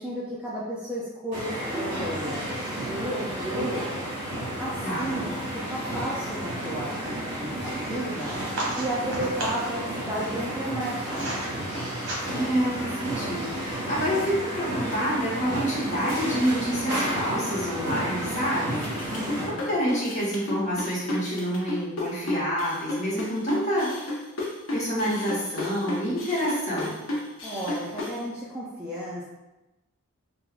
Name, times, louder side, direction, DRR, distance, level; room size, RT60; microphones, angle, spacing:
voice 1, 0.0-3.9 4.6-5.4 5.7-8.4 8.8-11.5 19.1-19.7 27.4-29.3, right 1 dB, 5° right, -8 dB, 0.3 m, -33 dB
sound 1, 1.3-19.5, right 1 dB, 30° right, 1.4 m, -32 dB
sound 2, 8.1-9.7 10.5-11.5 11.9-12.6, right 2 dB, 60° right, 0.8 m, -34 dB
voice 2, 12.3-18.9 19.4-23.9 24.7-27.0, equal, 35° left, -7 dB, 0.8 m, -28 dB
sound 3, 18.7-28.2, left 1 dB, 65° left, 0.6 m, -32 dB
3.3 x 2.1 x 2.3 m, 1.0 s
head